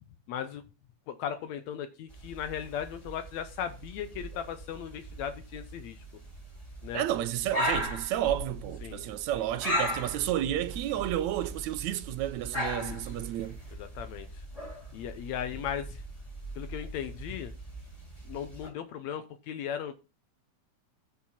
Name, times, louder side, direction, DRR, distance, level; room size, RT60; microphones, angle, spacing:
voice 1, 0.3-0.6 1.1-6.0 6.8-7.0 8.8-9.0 12.8-13.0 13.8-14.4 14.9-16.0 16.6-17.5 18.3-19.9, left 9 dB, 75° left, 2.0 m, -37 dB
sound 1, 2.1-18.7, equal, 10° left, 3.4 m, -38 dB
voice 2, 6.9-13.6, right 12 dB, 80° right, 2.1 m, -31 dB
14.5 x 5.5 x 4.3 m
omnidirectional pair, 3.3 m